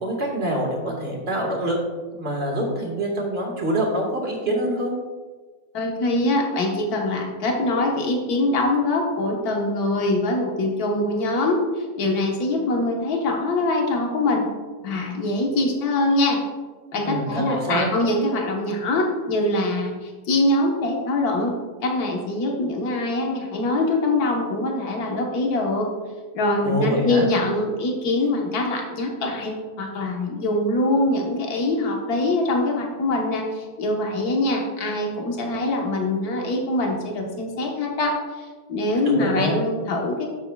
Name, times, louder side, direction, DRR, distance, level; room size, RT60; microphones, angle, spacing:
voice 1, 0.0-1.8 2.1-5.0 17.0-17.9 26.6-27.3 39.0-39.6, right 1 dB, 40° right, -1 dB, 1.8 m, -25 dB
voice 2, 5.7-14.5 14.8-16.4 16.9-25.9 26.3-40.3, left 2 dB, 70° left, 0 dB, 1.7 m, -23 dB
10.5 x 7.0 x 2.3 m, 1.4 s
omnidirectional pair, 1.7 m